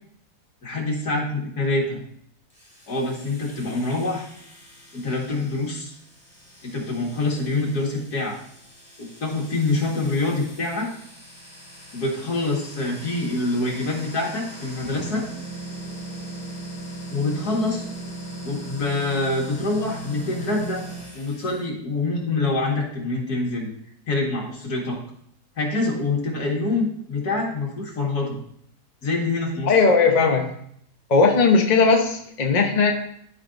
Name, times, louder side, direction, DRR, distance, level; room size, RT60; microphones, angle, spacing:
voice 1, 0.6-2.0 2.9-4.3 4.9-5.9 6.6-8.4 9.0-10.9 11.9-15.3 17.1-17.9 18.4-20.8 21.1-23.7 24.1-25.0 25.6-28.4 29.0-29.7, left 2 dB, 75° left, -1 dB, 2.3 m, -25 dB
sound 1, 2.5-21.6, equal, 5° right, 2.4 m, -39 dB
voice 2, 29.7-30.5 31.1-32.9, left 4 dB, 35° left, 2 dB, 0.9 m, -18 dB
14.5 x 5.0 x 2.6 m, 0.68 s
omnidirectional pair, 1.7 m